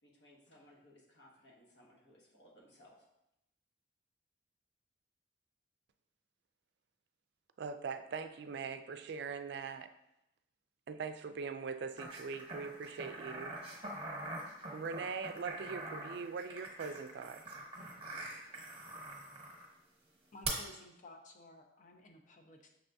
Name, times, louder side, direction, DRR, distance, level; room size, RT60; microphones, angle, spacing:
voice 1, 0.0-3.1, left 1 dB, 75° left, -3 dB, 1.2 m, -62 dB
voice 2, 7.6-9.9 10.9-13.6 14.7-17.4, right 5 dB, 65° right, 10 dB, 0.3 m, -41 dB
sound 1, 12.0-19.7 20.4-20.5, right 2 dB, 35° right, 1.0 m, -44 dB
voice 3, 20.3-22.7, left 2 dB, 45° left, 3 dB, 0.6 m, -55 dB
6.0 x 3.4 x 2.6 m, 0.84 s
head